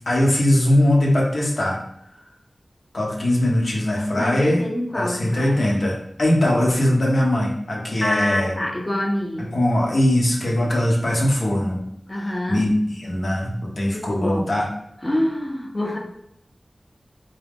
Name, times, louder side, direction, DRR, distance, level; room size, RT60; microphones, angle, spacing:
voice 1, 0.1-1.8 2.9-4.6 4.9-8.5 9.5-11.8 12.1-14.7, left 1 dB, 70° left, -2 dB, 1.0 m, -20 dB
voice 2, 4.1-5.7 8.0-9.5 12.1-12.6 13.9-14.5 15.0-16.0, left 1 dB, 30° left, 1 dB, 0.8 m, -26 dB
3.7 x 2.7 x 3.6 m, 0.75 s
wide cardioid pair, 55°, 0 cm